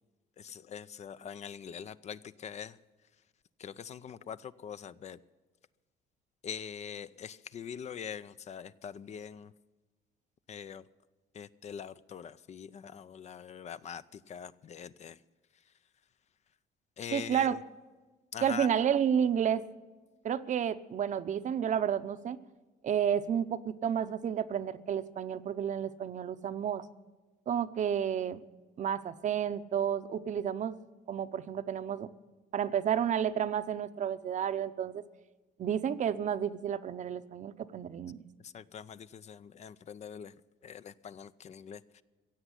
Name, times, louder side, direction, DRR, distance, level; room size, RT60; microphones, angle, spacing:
voice 1, 0.4-2.8 3.6-5.2 6.4-9.5 10.5-10.8 11.3-15.2 17.0-17.5 18.3-18.7 38.5-40.3 40.6-42.0, left 8 dB, 40° left, 15 dB, 0.5 m, -43 dB
voice 2, 17.1-17.6 18.4-19.6 20.2-22.4 22.8-26.8 27.5-28.4 28.8-30.8 31.1-32.1 32.5-35.0 35.6-38.2, right 8 dB, 45° right, 12 dB, 0.7 m, -31 dB
16.0 x 8.0 x 9.8 m, 1.3 s
cardioid pair, 110°, 17 cm